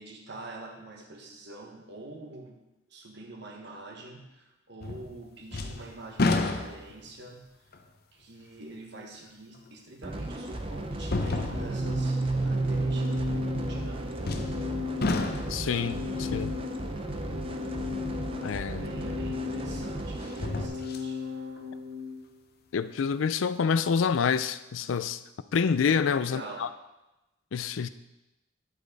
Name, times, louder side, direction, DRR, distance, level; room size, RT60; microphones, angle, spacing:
voice 1, 0.0-2.6 2.9-7.5 8.1-14.0 18.6-21.2 26.0-26.7, right 2 dB, 60° right, 1.5 m, -45 dB
sound 1, 4.8-5.2 5.5-7.1 7.7-7.8 9.7-9.8 11.0-11.9 14.2-14.7 15.0-15.7 18.7-18.8 20.2-21.1 21.6-21.7, left 2 dB, 55° left, 0.7 m, -30 dB
sound 2, 10.0-20.7, right 1 dB, 30° right, 0.7 m, -36 dB
Organ, 11.5-22.2, equal, 80° right, 1.0 m, -33 dB
voice 2, 15.5-16.5 18.4-18.9 22.7-25.2 25.5-26.7 27.5-27.9, left 6 dB, 85° left, 0.4 m, -27 dB
9.4 x 8.2 x 4.0 m
head